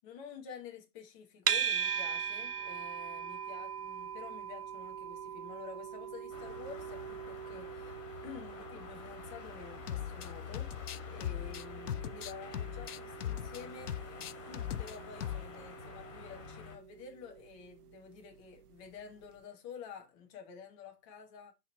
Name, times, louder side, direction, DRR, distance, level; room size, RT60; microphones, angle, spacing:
voice 1, 0.0-8.0 8.2-13.9 14.5-21.5, left 6 dB, 20° left, 1.3 m, -50 dB
sound 1, 1.5-18.7, right 8 dB, 70° right, 0.8 m, -41 dB
sound 2, 6.3-16.8, left 6 dB, 50° left, 2.6 m, -48 dB
sound 3, 9.9-10.3 10.5-13.6 13.9-14.9 15.2-15.5, left 11 dB, 70° left, 0.6 m, -39 dB
5.6 x 4.6 x 4.1 m
hypercardioid pair, 145°, 48 cm